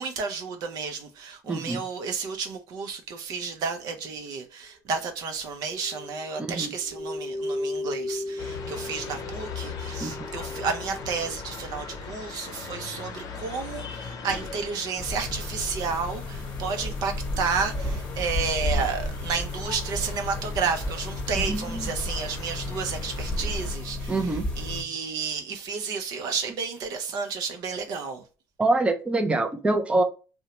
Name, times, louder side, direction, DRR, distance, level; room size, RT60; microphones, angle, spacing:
voice 1, 0.0-28.2, right 5 dB, 65° right, 0.6 m, -31 dB
voice 2, 1.5-1.8 6.5-6.7 10.0-10.2 21.3-21.9 24.1-24.5 28.6-30.0, right 2 dB, 15° right, 0.4 m, -25 dB
sound 1, 5.8-11.5, left 1 dB, 35° right, 0.8 m, -35 dB
sound 2, 8.4-23.8, left 5 dB, 50° left, 0.6 m, -40 dB
sound 3, 15.0-24.8, left 1 dB, 15° left, 0.9 m, -32 dB
2.7 x 2.1 x 2.8 m
supercardioid pair, 85°, 7 cm